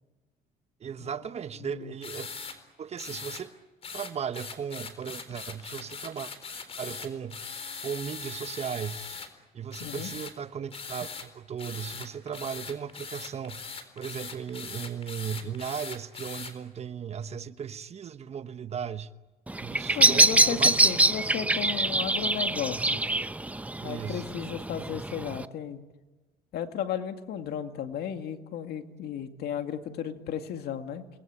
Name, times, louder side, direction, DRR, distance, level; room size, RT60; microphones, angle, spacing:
voice 1, 0.8-2.3 2.8-3.5 3.9-6.3 6.8-7.5 7.8-9.1 9.5-19.1 19.6-20.7 23.8-24.3, right 7 dB, 40° right, 1.2 m, -36 dB
voice 2, 1.6-1.9 9.8-10.1 19.9-23.0 23.8-25.8 26.5-31.2, left 9 dB, 70° left, 2.2 m, -34 dB
sound 1, 2.0-2.6 3.0-3.4 3.8-9.3 9.7-10.3 10.7-11.3 11.6-16.5, left 5 dB, 35° left, 4.0 m, -40 dB
Bird vocalization bird call bird song, 19.5-25.4, right 2 dB, 10° right, 0.8 m, -25 dB
29.5 x 21.0 x 8.8 m
cardioid pair, 110°, 17 cm